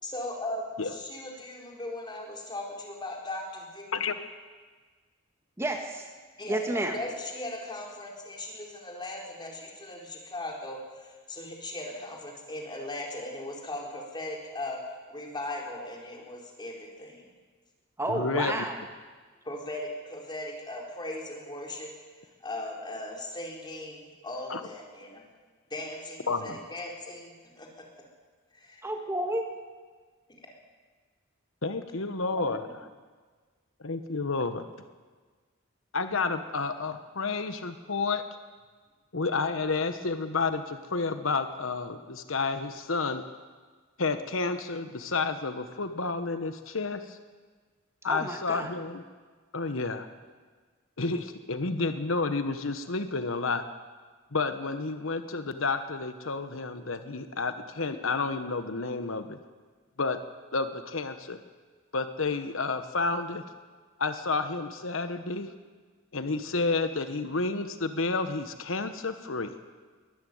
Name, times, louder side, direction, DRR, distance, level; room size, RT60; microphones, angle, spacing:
voice 1, 0.0-4.0 6.4-17.3 19.4-21.9 22.4-25.2 25.7-28.0 28.5-28.8, left 1 dB, 20° left, -1 dB, 4.4 m, -38 dB
voice 2, 5.6-6.0 6.5-7.0 18.0-18.7 28.8-29.5 32.3-32.6 48.1-48.7, right 1 dB, 15° right, 3 dB, 1.7 m, -31 dB
voice 3, 18.1-18.6 24.5-24.6 26.3-26.6 31.6-32.9 33.8-34.6 35.9-38.2 39.1-43.2 44.0-47.2 48.0-49.0 49.5-50.1 51.0-53.6 54.3-59.4 60.0-60.2 60.5-61.4 61.9-63.4 64.0-65.5 66.1-69.5, left 3 dB, 75° left, 9 dB, 1.2 m, -30 dB
22.5 x 13.5 x 9.4 m, 1.5 s
head